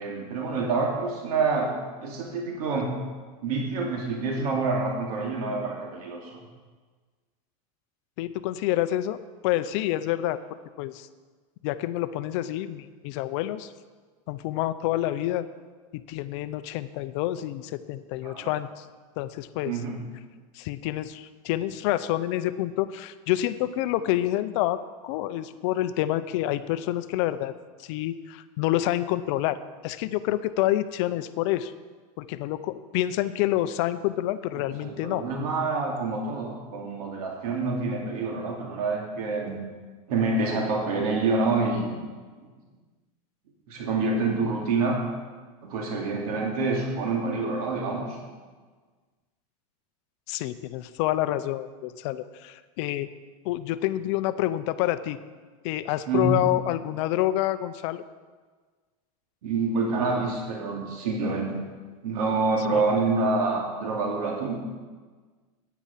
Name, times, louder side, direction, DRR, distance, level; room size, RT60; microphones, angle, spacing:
voice 1, 0.0-3.0 3.4-6.4 18.2-18.5 19.6-20.0 34.8-39.6 40.1-41.9 43.7-45.0 45.6-48.2 56.1-56.3 59.4-61.6 62.0-64.6, right 3 dB, 75° right, 0 dB, 2.4 m, -27 dB
voice 2, 8.2-10.4 10.8-11.1 11.6-13.7 14.3-15.4 15.9-18.9 19.2-19.7 20.5-27.5 27.8-31.7 32.2-35.2 50.3-53.1 53.4-55.2 55.6-58.0 62.7-62.8, left 14 dB, 50° left, 13 dB, 0.6 m, -28 dB
9.9 x 9.5 x 5.8 m, 1.4 s
supercardioid pair, 160°, 19 cm